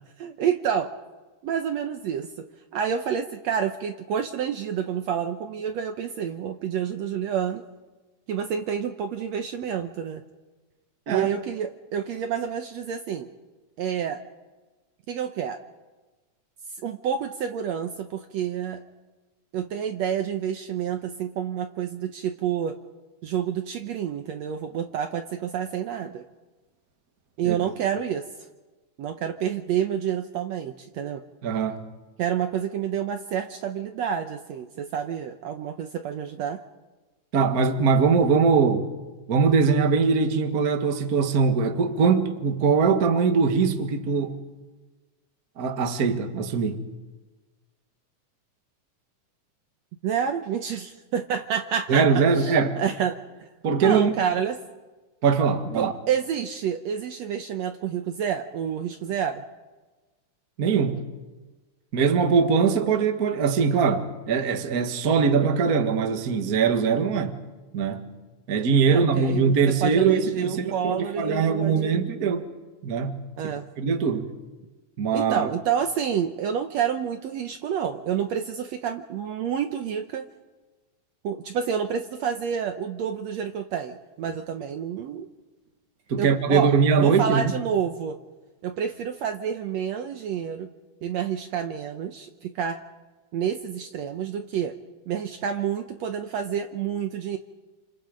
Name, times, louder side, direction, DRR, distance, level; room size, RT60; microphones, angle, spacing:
voice 1, 0.2-0.9 1.4-2.5 2.7-7.6 8.3-10.2 11.1-13.3 13.8-14.2 15.1-15.6 16.8-18.8 19.5-22.8 23.2-26.2 27.4-28.2 29.0-31.2 32.2-36.6 50.0-52.1 52.4-53.5 53.8-54.6 55.8-59.4 68.9-69.4 69.8-72.0 73.4-73.6 75.1-80.3 81.2-85.3 86.2-88.2 88.6-90.7 91.0-92.8 93.3-94.7 95.1-97.4, right 8 dB, 65° right, 1.9 m, -28 dB
voice 2, 31.4-31.8 37.3-38.9 39.3-44.4 45.6-46.8 51.9-52.8 53.6-54.1 55.2-55.9 60.6-61.0 61.9-67.4 67.7-68.1 68.5-72.4 72.8-74.3 75.0-75.5 86.1-87.5, right 5 dB, 40° right, 1.5 m, -22 dB
28.5 x 27.0 x 5.2 m
omnidirectional pair, 3.6 m